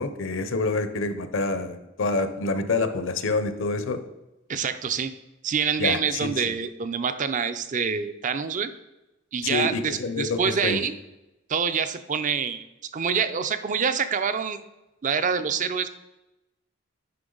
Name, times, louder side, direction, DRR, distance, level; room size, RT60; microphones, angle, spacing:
voice 1, 0.0-4.0 5.8-6.5 9.4-10.8, left 3 dB, 65° left, 10 dB, 0.7 m, -27 dB
voice 2, 4.5-5.1 5.4-8.7 9.3-10.9 11.5-12.6 12.9-14.6 15.0-15.9, right 6 dB, 40° right, 11 dB, 0.5 m, -26 dB
9.6 x 5.7 x 3.9 m, 0.97 s
head